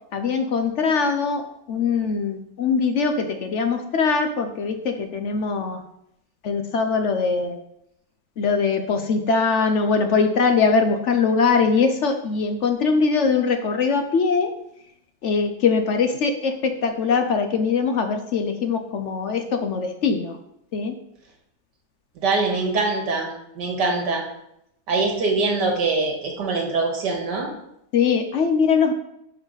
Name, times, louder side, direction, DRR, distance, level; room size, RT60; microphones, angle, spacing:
voice 1, 0.1-5.8 6.4-7.6 8.4-14.5 15.2-20.4 20.7-20.9 27.9-28.9, left 5 dB, 65° left, 6 dB, 0.7 m, -22 dB
voice 2, 22.2-24.2 24.9-27.5, right 3 dB, 80° right, 2 dB, 2.1 m, -23 dB
11.0 x 4.7 x 3.9 m, 0.79 s
omnidirectional pair, 1.8 m